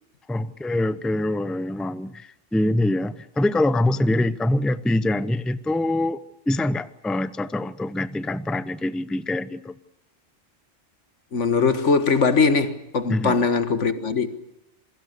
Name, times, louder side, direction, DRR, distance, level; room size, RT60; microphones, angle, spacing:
voice 1, 0.3-9.7 13.1-13.4, left 1 dB, ahead, 0.6 m, -24 dB
voice 2, 11.3-14.4, left 4 dB, 85° left, 1.9 m, -21 dB
27.5 x 22.5 x 6.8 m
omnidirectional pair, 1.2 m